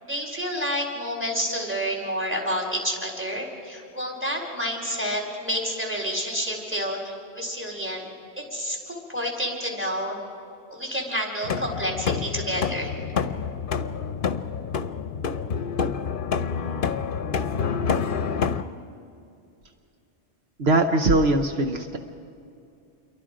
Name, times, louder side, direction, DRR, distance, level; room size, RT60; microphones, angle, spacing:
voice 1, 0.0-8.0 8.4-10.2 10.7-12.9, equal, 10° right, 1 dB, 4.0 m, -29 dB
sound 1, 11.4-18.6, left 6 dB, 55° left, 0.9 m, -27 dB
voice 2, 20.6-22.0, right 2 dB, 70° right, 5 dB, 1.2 m, -21 dB
28.0 x 23.5 x 5.1 m, 2.6 s
omnidirectional pair, 1.1 m